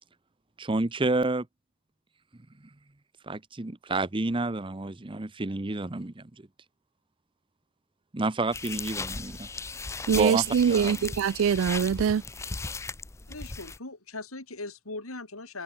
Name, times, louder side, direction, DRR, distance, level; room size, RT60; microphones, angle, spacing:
voice 1, 0.6-1.5 3.2-6.5 8.1-9.5 10.1-11.0, right 2 dB, 25° right, 0.8 m, -29 dB
sound 1, 8.5-13.8, left 4 dB, 15° left, 0.4 m, -37 dB
voice 2, 10.1-12.2, right 7 dB, 70° right, 0.3 m, -23 dB
voice 3, 13.3-15.6, left 2 dB, 85° left, 4.3 m, -39 dB
head